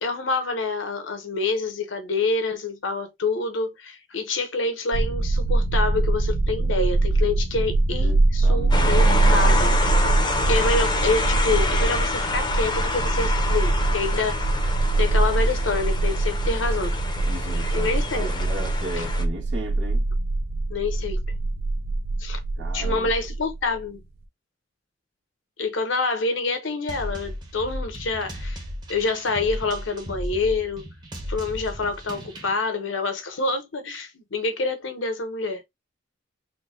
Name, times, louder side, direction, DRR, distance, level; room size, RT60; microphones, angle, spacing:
voice 1, 0.0-9.8 10.5-14.5 15.0-17.0 17.7-18.3 18.9-19.0 20.7-21.2 22.2-22.4 22.7-24.0 25.6-28.6 28.9-30.8 31.3-35.6, left 3 dB, 80° left, 0.9 m, -27 dB
sound 1, 4.9-23.8, right 2 dB, 55° right, 0.5 m, -23 dB
voice 2, 8.0-9.2 17.2-20.1 22.6-23.1, right 2 dB, 70° right, 1.3 m, -36 dB
sound 2, 8.7-19.2, left 2 dB, 25° left, 0.7 m, -28 dB
sound 3, 26.9-32.5, equal, 25° right, 1.0 m, -35 dB
3.9 x 2.2 x 3.6 m
head